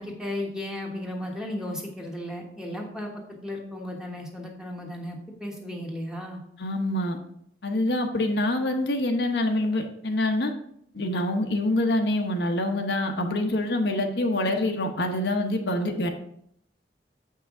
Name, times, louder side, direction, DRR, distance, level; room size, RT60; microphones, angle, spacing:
voice 1, 0.0-6.4, left 1 dB, 5° right, 0 dB, 1.2 m, -35 dB
voice 2, 6.6-7.2 7.6-10.5 10.9-16.1, left 1 dB, 75° left, 3 dB, 0.9 m, -25 dB
7.5 x 5.7 x 3.7 m, 0.69 s
head